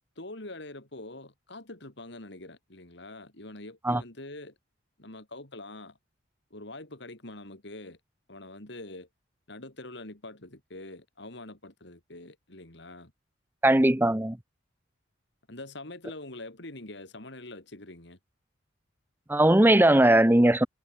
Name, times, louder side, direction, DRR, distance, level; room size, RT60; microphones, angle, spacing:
voice 1, 0.2-4.5 5.0-6.0 6.5-8.0 8.3-9.1 9.5-13.1 15.5-18.2, left 2 dB, 65° left, 3.6 m, -44 dB
voice 2, 13.6-14.4 19.3-20.7, right 1 dB, 10° right, 0.8 m, -19 dB
head